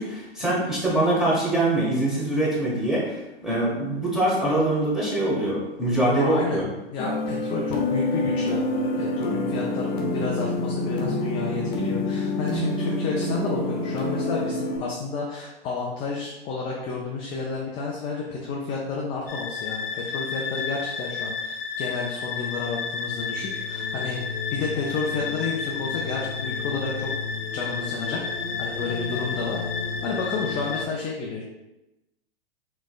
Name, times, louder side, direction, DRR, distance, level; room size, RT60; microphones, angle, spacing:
voice 1, 0.0-6.7, right 1 dB, ahead, -7 dB, 1.3 m, -23 dB
voice 2, 6.0-24.2 24.5-27.1 27.5-28.2 28.6-29.6 30.0-31.4, left 4 dB, 20° left, -2 dB, 0.4 m, -31 dB
sound 1, 7.0-14.8, left 2 dB, 35° left, 1.0 m, -27 dB
sound 2, 19.3-30.9, left 5 dB, 70° left, 0.6 m, -31 dB
4.0 x 3.1 x 2.4 m, 0.98 s
hypercardioid pair, 115°, 30 cm